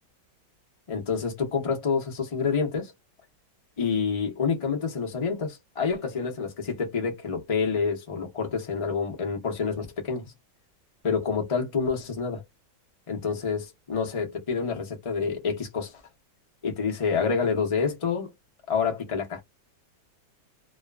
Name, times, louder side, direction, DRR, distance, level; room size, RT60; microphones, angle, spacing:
voice 1, 0.9-2.9 3.8-10.3 11.0-12.4 13.1-15.9 16.6-18.3 18.7-19.4, left 5 dB, 55° left, 0.4 m, -28 dB
2.7 x 2.4 x 2.3 m
omnidirectional pair, 1.9 m